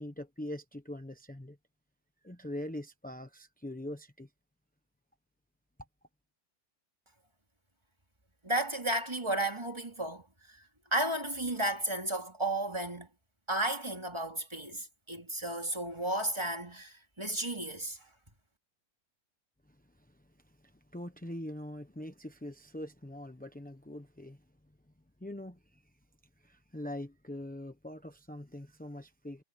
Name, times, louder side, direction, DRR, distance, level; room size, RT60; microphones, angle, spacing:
voice 1, 0.0-1.6 2.2-4.3 19.7-19.8 20.6-24.4 25.2-25.8 26.4-29.4, left 1 dB, 10° left, 0.5 m, -43 dB
voice 2, 8.4-10.6 10.9-13.1 13.5-18.1, right 1 dB, 15° right, 2.9 m, -33 dB
omnidirectional pair, 2.0 m